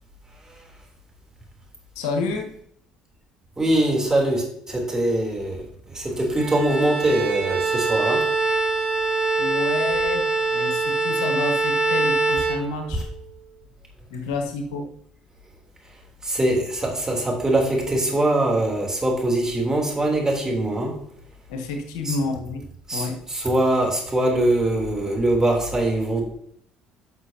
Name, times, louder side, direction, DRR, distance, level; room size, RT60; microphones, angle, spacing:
voice 1, 1.9-2.5 9.4-13.1 14.1-14.9 21.5-22.7 22.9-23.2, left 3 dB, 85° left, 5 dB, 1.1 m, -29 dB
voice 2, 3.6-8.3 16.2-21.0 22.0-22.2 22.9-26.2, right 1 dB, 20° right, 0 dB, 3.3 m, -22 dB
Bowed string instrument, 6.4-13.2, right 3 dB, 40° right, 2.9 m, -23 dB
10.5 x 6.0 x 2.9 m, 0.67 s
hypercardioid pair, 60°, 3 cm